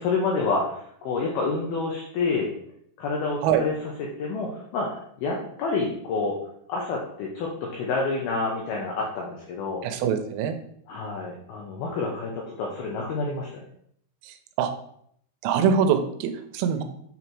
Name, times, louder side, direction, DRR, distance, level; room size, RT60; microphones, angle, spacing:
voice 1, 0.0-2.5 3.0-6.4 6.7-9.9 10.9-13.6, left 3 dB, 85° left, -1 dB, 2.2 m, -28 dB
voice 2, 9.8-10.6 14.6-14.7 15.4-16.8, right 7 dB, 85° right, 8 dB, 3.3 m, -23 dB
7.7 x 4.0 x 4.6 m, 0.67 s
omnidirectional pair, 5.8 m